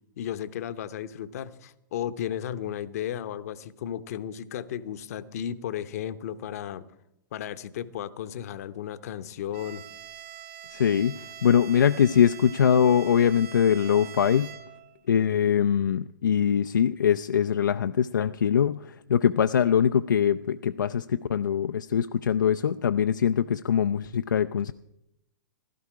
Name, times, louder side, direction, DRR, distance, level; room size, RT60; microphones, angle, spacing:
voice 1, 0.2-6.9 7.3-9.8, left 10 dB, 50° left, 13 dB, 0.8 m, -34 dB
Bowed string instrument, 9.5-15.0, right 9 dB, 35° right, 1.4 m, -44 dB
voice 2, 10.7-14.5 15.1-24.7, left 8 dB, 65° left, 9 dB, 0.4 m, -23 dB
16.0 x 12.5 x 4.8 m, 0.85 s
figure-of-eight pair, 110°, 11 cm